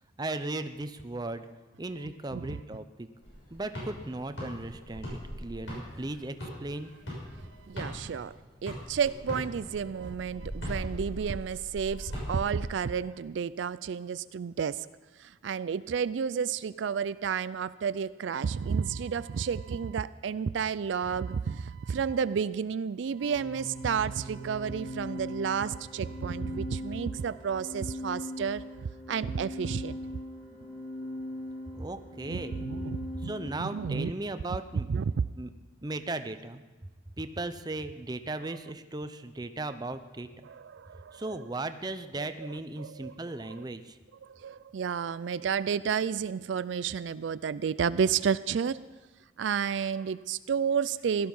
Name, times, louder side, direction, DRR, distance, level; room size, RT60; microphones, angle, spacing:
voice 1, 0.2-1.5 1.8-3.1 3.5-6.9 30.6-30.8 31.7-32.6 33.1-34.9 35.4-35.5 35.8-36.6 37.2-40.3 41.1-44.0, right 2 dB, 20° right, 10 dB, 0.6 m, -37 dB
sound 1, 3.2-8.3 8.7-12.5, equal, 85° left, 6.3 m, -39 dB
voice 2, 7.7-8.3 8.6-14.9 15.2-28.6 29.1-30.0 32.3-33.3 33.6-34.1 34.9-35.0 40.4-41.4 42.2-42.5 42.8-43.3 44.2-48.8 49.4-51.3, right 6 dB, 75° right, 16 dB, 0.4 m, -31 dB
Organ, 23.2-34.0, left 1 dB, 55° left, 3.2 m, -40 dB
17.0 x 12.5 x 5.5 m, 1.3 s
head